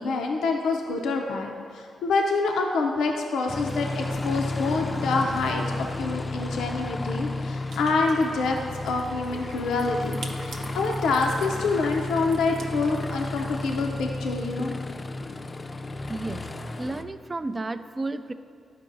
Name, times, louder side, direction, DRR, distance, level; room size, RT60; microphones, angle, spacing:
voice 1, 0.0-5.6 6.0-14.8, left 3 dB, 85° left, 1 dB, 0.5 m, -26 dB
Aircraft, 3.5-17.0, left 2 dB, 35° left, 0.4 m, -32 dB
sound 1, 7.7-14.3, right 2 dB, 75° right, 0.7 m, -45 dB
voice 2, 16.1-16.5 16.8-18.3, right 2 dB, 30° right, 11 dB, 0.3 m, -32 dB
12.0 x 4.6 x 2.6 m, 2.3 s
supercardioid pair, 55°, 0 cm